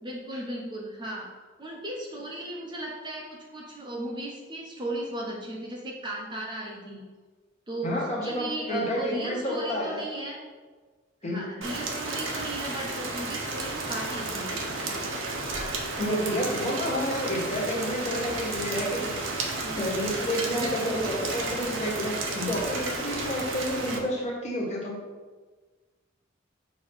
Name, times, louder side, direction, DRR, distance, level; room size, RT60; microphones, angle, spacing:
voice 1, 0.0-1.3 1.6-7.1 7.7-10.4 11.2-15.0 19.6-19.8 20.4-21.4, right 1 dB, 25° right, -2 dB, 0.8 m, -36 dB
voice 2, 7.8-10.0 11.2-11.4 16.0-19.2 19.8-25.0, equal, 35° left, -3 dB, 1.6 m, -30 dB
Rain, 11.6-24.0, right 2 dB, 80° right, 1.0 m, -32 dB
6.8 x 3.0 x 5.5 m, 1.4 s
head